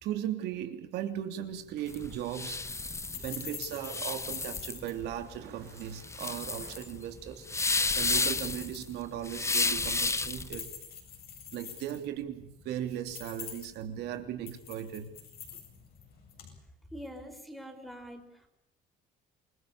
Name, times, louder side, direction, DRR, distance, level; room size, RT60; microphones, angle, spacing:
voice 1, 0.0-2.6 3.1-10.7 11.5-15.1, right 11 dB, 80° right, 7 dB, 3.2 m, -37 dB
sound 1, 1.5-16.6, left 8 dB, 65° left, 7.9 m, -46 dB
sound 2, 1.9-10.5, left 3 dB, 15° left, 1.1 m, -32 dB
voice 2, 16.9-18.5, equal, ahead, 4 dB, 5.2 m, -44 dB
28.0 x 20.0 x 6.8 m, 0.84 s
cardioid pair, 110°, 17 cm